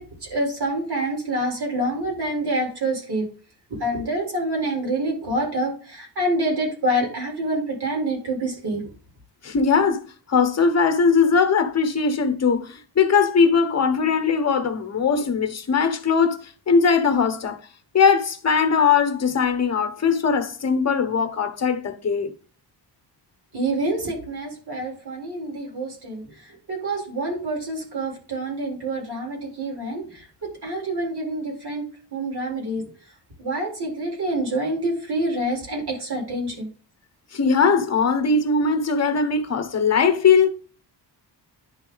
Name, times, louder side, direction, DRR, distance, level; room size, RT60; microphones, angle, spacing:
voice 1, 0.0-3.3 3.7-8.8 23.5-31.8 32.1-32.9 33.4-36.7, right 1 dB, 60° right, 4.4 m, -27 dB
voice 2, 9.4-10.0 10.3-17.6 17.9-22.3 37.3-40.5, left 5 dB, 35° left, 1.1 m, -20 dB
10.5 x 4.0 x 3.9 m
wide cardioid pair, 170°, 43 cm